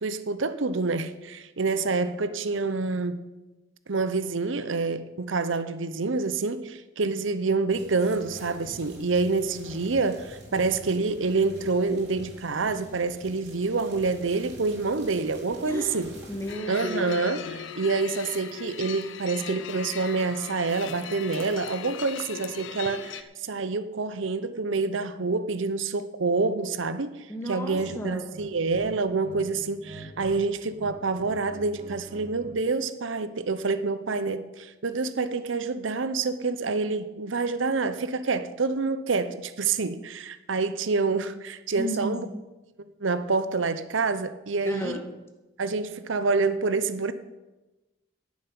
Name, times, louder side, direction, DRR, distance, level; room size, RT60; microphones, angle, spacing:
voice 1, 0.0-3.2 3.9-16.1 16.7-42.3 42.8-45.0 45.6-47.1, right 4 dB, 75° right, 0.7 m, -27 dB
sound 1, 7.7-16.5, right 1 dB, 55° right, 3.8 m, -47 dB
voice 2, 15.7-17.2 27.3-28.3 41.7-42.3 44.6-45.1, left 1 dB, 15° left, 1.4 m, -33 dB
sound 2, 16.5-23.2, left 8 dB, 75° left, 0.8 m, -39 dB
sound 3, 27.7-27.9 28.3-29.4 29.7-30.4 30.6-32.6, right 1 dB, 35° right, 2.1 m, -44 dB
10.0 x 7.3 x 9.4 m
head